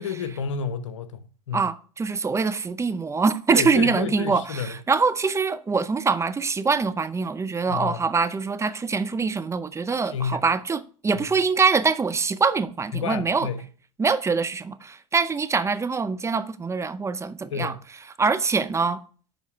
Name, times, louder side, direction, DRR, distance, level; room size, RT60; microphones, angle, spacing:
voice 1, 0.0-1.7 3.5-4.8 7.7-8.0 10.1-10.4 11.1-11.3 12.9-13.7 17.5-17.8, left 6 dB, 85° left, 0.7 m, -30 dB
voice 2, 1.5-13.5 14.0-17.8 18.2-19.0, right 4 dB, 20° right, 0.5 m, -24 dB
11.0 x 3.9 x 3.5 m
hypercardioid pair, 80°, 16 cm